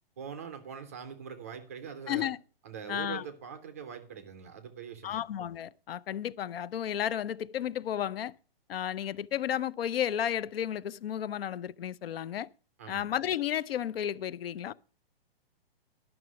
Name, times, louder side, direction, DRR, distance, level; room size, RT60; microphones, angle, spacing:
voice 1, 0.2-2.3 2.6-5.2 12.8-13.1, right 7 dB, 15° right, 0.4 m, -43 dB
voice 2, 2.1-2.4 2.9-3.2 5.0-8.3 8.7-12.5 12.9-14.7, left 10 dB, 70° left, 0.6 m, -33 dB
11.0 x 5.9 x 6.0 m
hypercardioid pair, 170°, 31 cm